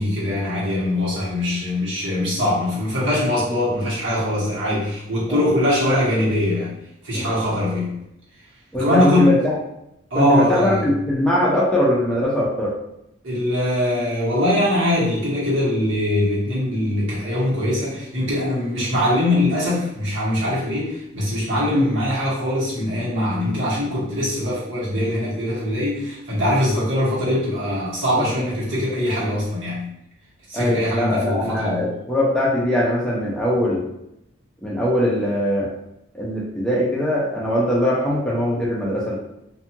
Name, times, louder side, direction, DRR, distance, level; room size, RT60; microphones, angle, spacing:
voice 1, 0.0-6.8 7.0-7.9 8.7-9.3 10.1-10.9 13.2-29.9 30.5-31.9, left 1 dB, 75° right, -8 dB, 1.3 m, -22 dB
voice 2, 8.7-9.4 10.1-12.7 21.7-21.9 28.1-28.4 30.5-33.8 34.6-35.7 36.1-39.2, left 1 dB, 5° left, -6 dB, 0.5 m, -21 dB
2.6 x 2.3 x 2.8 m, 0.82 s
head